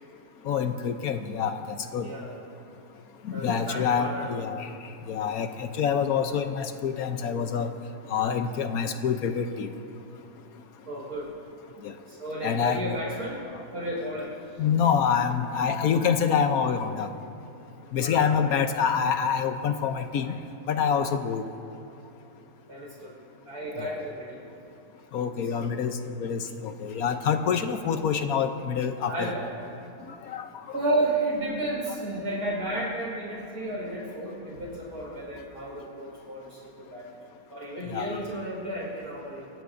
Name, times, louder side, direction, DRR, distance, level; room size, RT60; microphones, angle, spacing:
voice 1, 0.5-2.1 3.3-4.7 5.1-7.7 8.1-9.7 11.8-11.9 12.4-12.8 13.5-13.6 14.6-17.1 17.9-20.3 20.7-21.4 23.8-23.9 25.1-29.4 30.3-30.5 37.9-38.1, left 7 dB, 70° left, 7 dB, 1.1 m, -26 dB
voice 2, 2.0-2.3 3.3-4.3 10.9-11.3 12.1-13.4 13.7-14.4 18.0-18.4 22.7-23.2 23.5-24.4 25.6-25.8 29.1-29.5 30.7-37.1 37.5-39.5, right 1 dB, 85° right, -3 dB, 5.2 m, -32 dB
28.0 x 15.5 x 2.6 m, 2.6 s
omnidirectional pair, 1.7 m